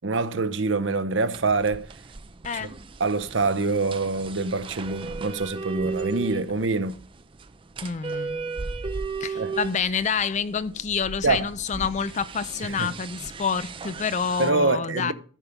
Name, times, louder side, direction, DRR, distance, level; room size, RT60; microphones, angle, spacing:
voice 1, 0.0-1.9 2.5-2.7 3.0-7.0 9.3-9.5 11.2-11.5 12.6-12.9 14.4-15.1, right 3 dB, 70° right, 0.8 m, -25 dB
sound 1, 1.3-14.5, right 4 dB, 25° right, 0.5 m, -36 dB
voice 2, 2.4-2.8 7.8-8.7 9.2-15.1, left 6 dB, 35° left, 0.4 m, -28 dB
13.5 x 5.2 x 5.8 m
head